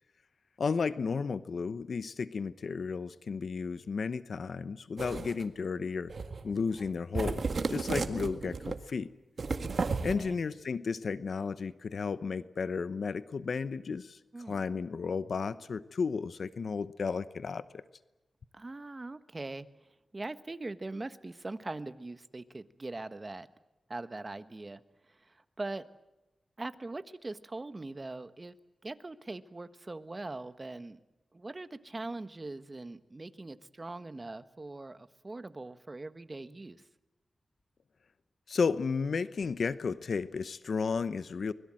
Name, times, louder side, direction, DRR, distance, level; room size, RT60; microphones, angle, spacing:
voice 1, 0.6-6.1 6.4-7.4 7.7-9.1 10.0-14.2 14.5-17.8 38.5-41.5, left 5 dB, 70° left, 15 dB, 0.9 m, -33 dB
sound 1, 5.0-5.4 6.1-6.5 6.8-6.9 7.1-8.8 9.4-10.1, right 4 dB, 60° right, 1.8 m, -33 dB
voice 2, 7.9-8.3 10.1-10.4 14.3-14.6 18.5-19.7 20.1-23.5 23.9-25.9 26.6-28.5 28.8-31.0 31.3-36.8, right 2 dB, 30° right, 12 dB, 1.3 m, -42 dB
25.0 x 21.5 x 7.7 m, 1.0 s
wide cardioid pair, 75°, 0 cm